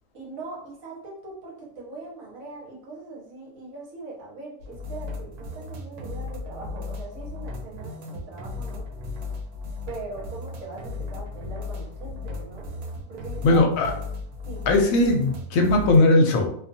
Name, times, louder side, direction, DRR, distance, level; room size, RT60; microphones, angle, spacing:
voice 1, 0.1-8.9 9.9-12.7 13.1-13.9 14.5-14.6, right 3 dB, 70° right, -3 dB, 1.3 m, -40 dB
sound 1, 4.6-16.0, left 2 dB, 85° right, 1.1 m, -36 dB
voice 2, 13.4-13.9 14.7-16.5, left 2 dB, 70° left, 3 dB, 0.9 m, -19 dB
2.6 x 2.4 x 2.6 m, 0.65 s
omnidirectional pair, 1.6 m